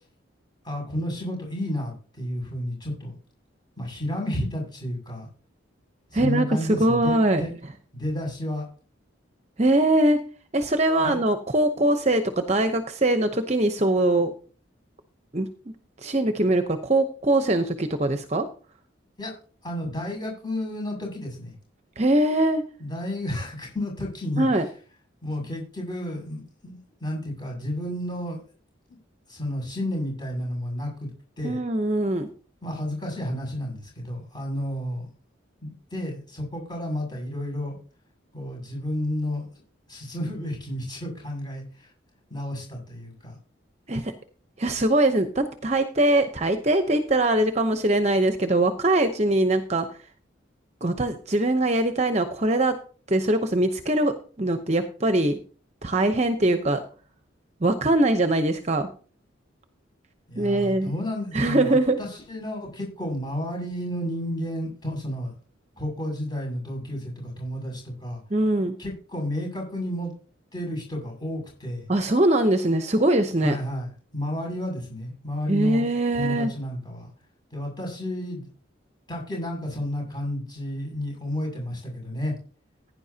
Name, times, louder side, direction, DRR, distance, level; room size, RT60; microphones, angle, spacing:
voice 1, 0.6-3.2 3.8-5.3 6.1-7.5 7.9-8.6 11.0-11.2 19.2-19.3 19.6-21.5 22.8-24.5 25.2-28.4 29.3-31.1 31.4-31.6 32.6-35.1 35.6-37.8 38.3-39.5 39.9-41.9 42.3-43.4 60.3-65.3 65.8-68.2 68.8-70.1 70.5-71.9 73.4-77.1 77.5-78.5 79.1-82.3, left 1 dB, 20° left, 0 dB, 6.9 m, -31 dB
voice 2, 6.1-7.4 9.6-10.2 10.5-14.3 15.3-15.5 16.0-18.5 22.0-22.6 24.4-24.7 31.4-32.3 43.9-44.1 44.6-49.9 50.8-52.8 53.1-55.4 55.8-56.8 57.6-58.9 60.4-60.9 61.3-62.0 68.3-68.8 71.9-73.6 75.5-76.5, right 1 dB, 35° right, 8 dB, 0.8 m, -22 dB
16.0 x 10.0 x 2.8 m, 0.40 s
head